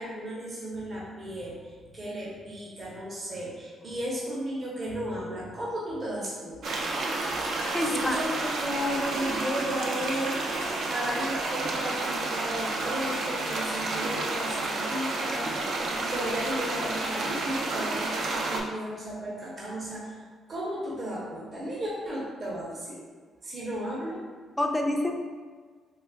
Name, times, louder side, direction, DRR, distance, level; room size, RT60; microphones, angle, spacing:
voice 1, 0.0-6.8 7.9-8.3 8.6-20.2 20.5-23.0 23.4-24.2, equal, 40° right, -5 dB, 0.8 m, -34 dB
sound 1, 6.6-18.6, right 2 dB, 65° right, 0.4 m, -30 dB
voice 2, 7.7-8.3 24.6-25.1, left 1 dB, 10° left, 2 dB, 0.4 m, -27 dB
4.0 x 2.4 x 2.3 m, 1.5 s
cardioid pair, 90°, 0 cm